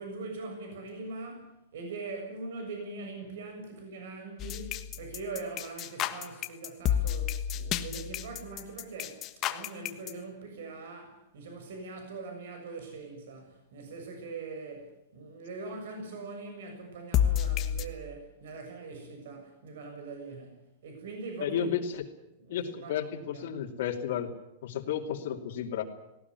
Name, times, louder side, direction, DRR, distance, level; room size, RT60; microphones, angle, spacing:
voice 1, 0.0-21.7 22.4-23.6, right 3 dB, 75° right, 4 dB, 6.9 m, -42 dB
sound 1, 4.4-10.1 17.1-17.8, left 10 dB, 30° left, 1.3 m, -30 dB
voice 2, 21.4-22.0 22.5-24.3 24.6-25.8, left 9 dB, 70° left, -1 dB, 2.9 m, -32 dB
18.5 x 18.5 x 9.7 m, 0.90 s
supercardioid pair, 160°, 0 cm